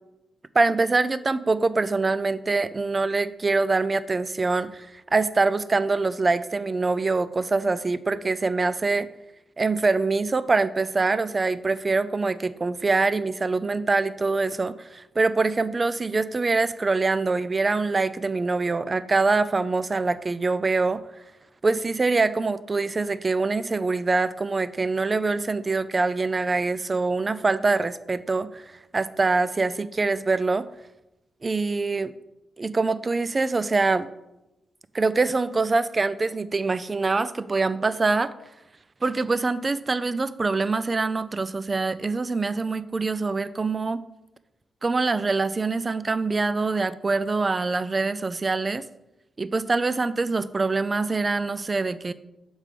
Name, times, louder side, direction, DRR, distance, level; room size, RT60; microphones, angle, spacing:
voice 1, 0.5-9.1 9.6-21.0 21.6-28.6 28.9-30.7 31.4-32.1 32.6-34.1 34.9-38.3 39.0-44.0 44.8-48.8 49.4-52.1, right 3 dB, 40° right, 15 dB, 0.3 m, -24 dB
6.6 x 3.6 x 4.9 m, 0.92 s
cardioid pair, 60°, 0 cm